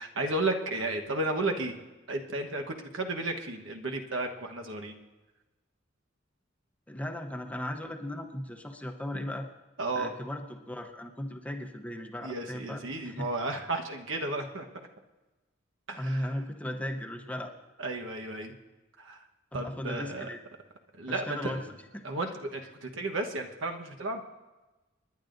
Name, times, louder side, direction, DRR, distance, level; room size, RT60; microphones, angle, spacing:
voice 1, 0.0-1.7 2.1-5.0 9.8-10.1 12.2-14.7 15.9-16.3 17.8-18.5 19.0-19.2 19.5-20.3 20.9-21.6 22.0-24.2, right 2 dB, 70° right, 3 dB, 1.2 m, -33 dB
voice 2, 6.9-9.5 10.0-13.3 16.0-17.5 19.5-20.4 21.1-21.6 21.9-22.1, left 1 dB, 5° left, 4 dB, 0.9 m, -36 dB
30.0 x 10.5 x 2.6 m, 1.1 s
head